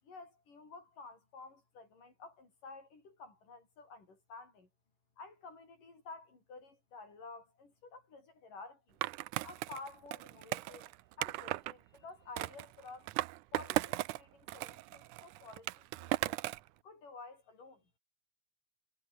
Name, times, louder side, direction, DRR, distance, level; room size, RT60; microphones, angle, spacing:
voice 1, 0.0-4.7 5.2-9.0 9.4-13.1 13.5-16.4 16.8-17.8, left 3 dB, 70° left, 9.7 m, -52 dB
Skateboard, 9.0-11.7 12.4-14.2 14.5-16.7, right 17 dB, 80° right, 2.0 m, -37 dB
omnidirectional pair, 3.9 m